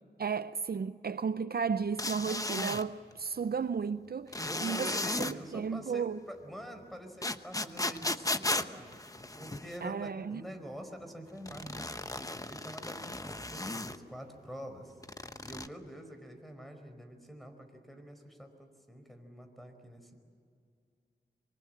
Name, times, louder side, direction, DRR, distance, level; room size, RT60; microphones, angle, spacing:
voice 1, 0.2-4.9 5.2-6.2 9.8-10.4, right 6 dB, 65° right, 0.6 m, -34 dB
sound 1, 2.0-2.8 4.3-5.3 7.2-9.8 11.5-14.0 15.0-15.7, left 2 dB, 20° left, 1.0 m, -35 dB
voice 2, 4.3-9.0 9.4-11.9 12.4-14.9 15.4-20.2, equal, ahead, 4.7 m, -46 dB
26.0 x 24.0 x 7.7 m
wide cardioid pair, 70°, 17 cm